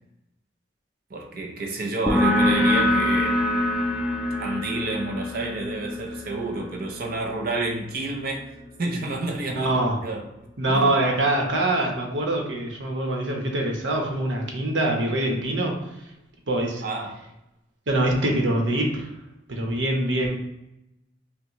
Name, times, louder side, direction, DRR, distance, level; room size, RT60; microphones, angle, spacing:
voice 1, 1.1-3.4 4.4-8.5 8.8-9.7 10.0-10.3 10.7-10.9 16.8-17.2, right 2 dB, 50° right, 1 dB, 0.6 m, -30 dB
sound 1, 2.1-9.3, left 1 dB, 5° right, 0.5 m, -25 dB
voice 2, 9.5-10.0 10.6-15.7 16.5-16.8 17.9-19.1 19.5-20.4, right 1 dB, 85° right, 1 dB, 1.0 m, -24 dB
5.8 x 2.2 x 3.0 m, 0.90 s
head